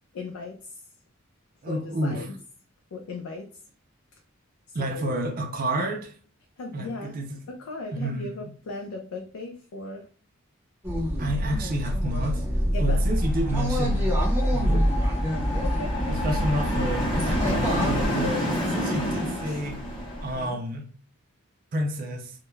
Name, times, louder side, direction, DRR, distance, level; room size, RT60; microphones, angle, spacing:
voice 1, 0.1-0.8 1.7-2.3 2.9-3.5 4.7-5.2 6.6-7.2 7.5-10.1 12.7-13.0 15.6-16.0 19.5-19.7 20.3-20.6, left 3 dB, 75° left, 0.4 m, -37 dB
voice 2, 1.6-2.3 4.7-6.1 6.7-7.4 7.9-8.5 11.2-12.4 12.8-14.0 14.5-14.9 16.1-19.8 20.2-20.9 21.7-22.3, right 1 dB, 40° right, 0.4 m, -30 dB
sound 1, 10.8-18.1, equal, 10° right, 0.7 m, -25 dB
sound 2, 13.0-20.5, left 1 dB, 25° left, 0.7 m, -30 dB
2.2 x 2.1 x 3.0 m
head